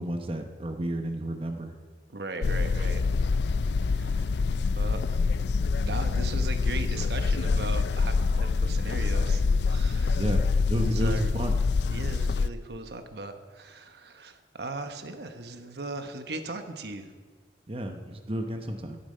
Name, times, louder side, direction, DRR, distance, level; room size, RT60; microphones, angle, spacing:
voice 1, 0.0-1.7 10.1-11.6 17.7-19.0, right 1 dB, 30° right, 5 dB, 0.9 m, -31 dB
voice 2, 2.1-3.0 3.9-4.4 4.7-5.0 5.8-10.3 10.9-11.3 11.9-17.1, right 2 dB, 65° right, 7 dB, 1.1 m, -38 dB
sound 1, 2.4-12.5, left 4 dB, 75° left, 0.4 m, -26 dB
13.0 x 11.0 x 5.5 m, 1.5 s
head